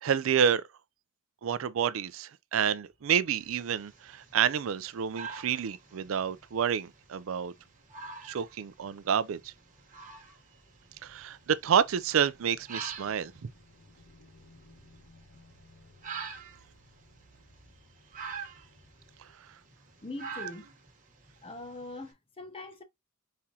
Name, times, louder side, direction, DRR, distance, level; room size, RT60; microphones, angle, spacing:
voice 1, 0.0-0.6 1.4-7.5 8.2-9.5 11.0-13.5, right 8 dB, 70° right, 0.4 m, -29 dB
sound 1, 2.8-19.3, left 1 dB, 70° left, 2.5 m, -63 dB
sound 2, 3.4-22.1, right 5 dB, 40° right, 1.1 m, -47 dB
voice 2, 20.0-20.7 21.4-22.8, left 2 dB, 25° left, 0.7 m, -42 dB
4.4 x 3.6 x 2.8 m
head